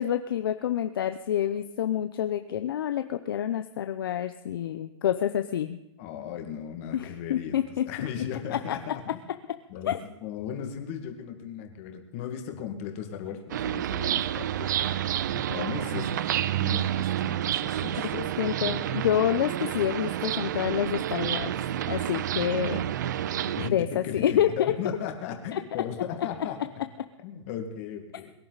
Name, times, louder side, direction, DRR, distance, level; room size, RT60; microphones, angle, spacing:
voice 1, 0.0-5.8 6.9-7.9 8.7-8.8 9.9-10.0 18.0-21.6 21.9-22.8 23.7-24.7 25.5-25.6, left 10 dB, 50° left, 9 dB, 0.8 m, -28 dB
voice 2, 6.0-9.2 9.7-16.3 16.6-18.3 23.6-26.6 27.2-28.3, left 8 dB, 25° left, 4 dB, 2.1 m, -37 dB
sound 1, 13.5-23.7, right 11 dB, 40° right, 0.5 m, -29 dB
22.5 x 11.0 x 4.1 m, 0.94 s
hypercardioid pair, 175°, 15 cm